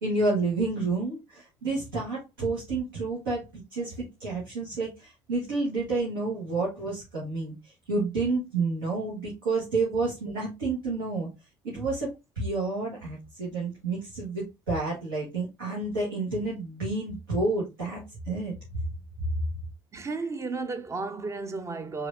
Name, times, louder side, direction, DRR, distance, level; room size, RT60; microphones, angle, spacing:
voice 1, 0.0-11.3 11.6-12.1 12.3-18.5, right 3 dB, 80° right, 1.3 m, -30 dB
voice 2, 19.9-22.1, right 3 dB, 25° right, 0.6 m, -33 dB
4.9 x 2.7 x 2.4 m
hypercardioid pair, 60°, 11 cm